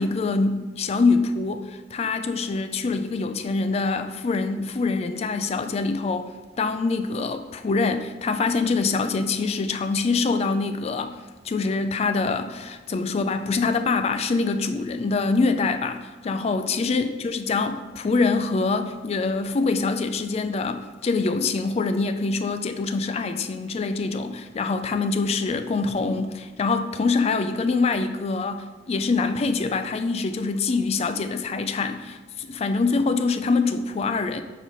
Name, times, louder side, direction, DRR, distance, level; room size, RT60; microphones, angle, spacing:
voice 1, 0.0-6.3 6.6-11.2 11.4-34.4, left 4 dB, 35° left, 0.3 m, -25 dB
5.3 x 4.0 x 4.5 m
head